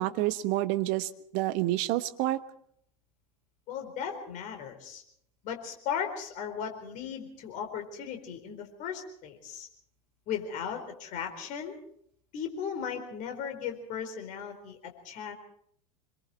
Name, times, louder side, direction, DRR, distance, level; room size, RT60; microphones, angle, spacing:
voice 1, 0.0-2.4, right 16 dB, 45° right, 12 dB, 1.2 m, -28 dB
voice 2, 3.7-5.0 5.4-9.7 10.3-11.8 12.3-15.3, left 7 dB, 40° left, 4 dB, 4.3 m, -37 dB
26.5 x 22.5 x 4.4 m, 0.67 s
figure-of-eight pair, 85°, 19 cm